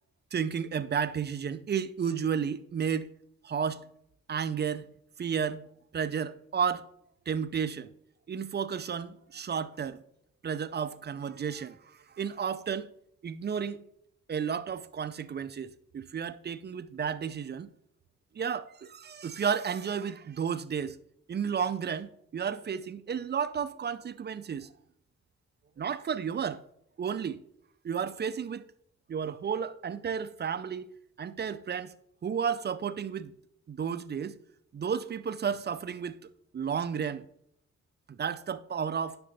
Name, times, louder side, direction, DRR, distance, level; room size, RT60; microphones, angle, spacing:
voice 1, 0.3-3.1 3.4-3.9 4.3-4.9 5.2-5.7 5.9-6.9 7.3-7.9 8.3-10.0 10.4-12.9 13.2-13.8 14.3-17.7 18.3-21.0 21.3-24.7 25.8-26.6 27.0-27.4 27.8-28.7 29.1-31.9 32.2-33.3 33.7-34.4 34.7-36.2 36.5-37.3 38.1-39.2, right 7 dB, 30° right, 0.4 m, -32 dB
9.9 x 5.9 x 2.7 m
hypercardioid pair, 40°, 37 cm